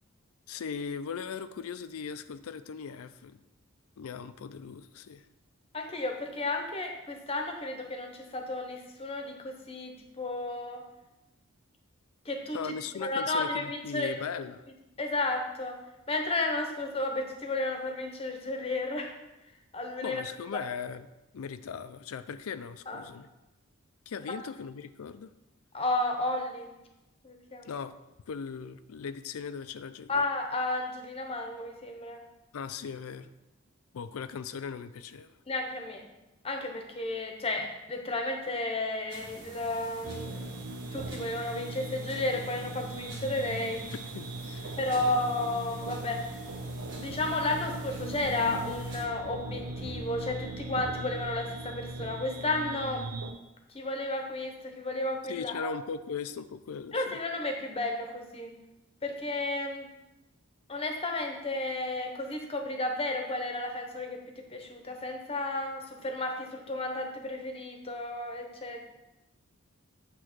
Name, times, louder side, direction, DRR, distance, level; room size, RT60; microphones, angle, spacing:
voice 1, 0.5-3.4 4.0-5.3 12.5-14.7 20.0-21.1 21.3-23.3 24.1-25.3 27.6-27.9 28.3-30.3 32.5-33.3 33.9-35.3 44.1-44.8 55.3-57.2, left 6 dB, 85° left, 12 dB, 0.4 m, -38 dB
voice 2, 5.7-10.8 12.3-12.6 13.0-14.2 15.0-15.8 16.1-19.1 19.7-20.2 20.5-20.6 22.9-23.0 24.3-24.4 25.7-26.7 27.2-27.7 30.1-32.2 35.5-36.0 36.4-40.6 40.9-43.8 44.8-46.2 47.0-53.0 53.7-55.7 56.9-58.5 59.0-59.9 60.7-68.8, left 2 dB, 25° left, 3 dB, 0.8 m, -33 dB
sound 1, 39.1-49.1, right 2 dB, 55° right, 1.6 m, -47 dB
sound 2, 40.0-53.3, right 2 dB, 80° right, 0.7 m, -39 dB
8.7 x 3.1 x 6.0 m, 0.99 s
head